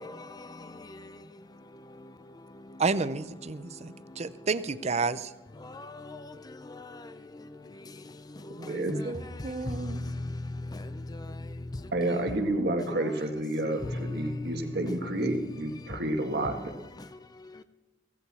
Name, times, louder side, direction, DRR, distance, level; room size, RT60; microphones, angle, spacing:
voice 1, 0.0-2.8 3.5-4.5 5.6-11.9 12.9-13.3 13.8-14.8 15.8-17.6, left 2 dB, 20° left, 0.5 m, -40 dB
voice 2, 2.8-5.3 8.6-10.1, right 4 dB, 40° right, 0.6 m, -31 dB
voice 3, 8.7-9.1 11.9-16.6, right 1 dB, 65° right, 1.7 m, -30 dB
16.0 x 15.0 x 4.3 m
head